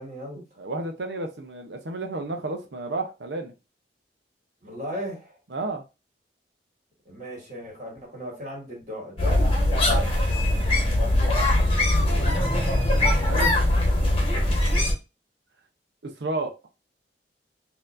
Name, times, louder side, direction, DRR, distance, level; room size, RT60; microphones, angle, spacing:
voice 1, 0.0-0.5 4.6-5.4 7.1-10.4 13.3-13.6 13.8-14.1, equal, 45° right, -2 dB, 2.0 m, -37 dB
voice 2, 0.6-3.5 5.5-5.8 11.4-12.3 13.3-13.5 16.0-16.6, right 2 dB, 70° right, 4 dB, 0.7 m, -32 dB
sound 1, 9.2-14.9, left 1 dB, 30° left, 1.2 m, -21 dB
4.3 x 2.8 x 2.5 m, 0.27 s
head